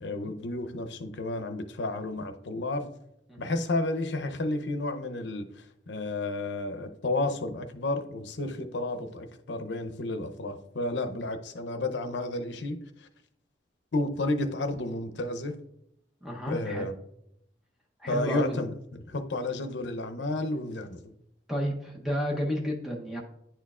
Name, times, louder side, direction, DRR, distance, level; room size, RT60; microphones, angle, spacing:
voice 1, 0.0-2.9 3.4-13.1 13.9-15.6 16.5-16.9 18.1-21.1, left 2 dB, 75° left, 8 dB, 0.6 m, -32 dB
voice 2, 3.3-3.6 16.2-16.9 18.0-18.6 21.5-23.2, equal, ahead, -2 dB, 0.8 m, -32 dB
9.9 x 4.5 x 2.4 m, 0.79 s
head